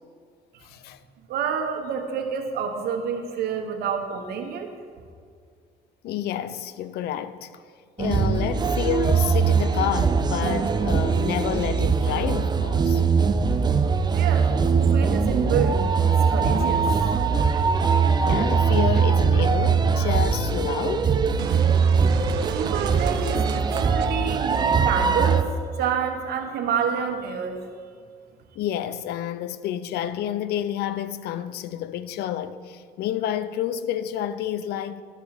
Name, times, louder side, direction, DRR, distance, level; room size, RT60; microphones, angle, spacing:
voice 1, 0.6-1.0 6.0-7.5 8.0-13.0 18.2-21.1 28.6-35.0, left 10 dB, 75° left, 0.6 m, -29 dB
voice 2, 1.3-4.7 14.1-14.5 14.7-15.8 16.3-17.0 17.3-18.0 22.5-25.5 25.7-27.6, right 7 dB, 70° right, 1.2 m, -28 dB
sound 1, 8.0-25.4, right 5 dB, 25° right, 0.5 m, -21 dB
sound 2, 21.4-25.4, right 11 dB, 85° right, 0.5 m, -35 dB
11.5 x 7.2 x 4.9 m
cardioid pair, 110°, 17 cm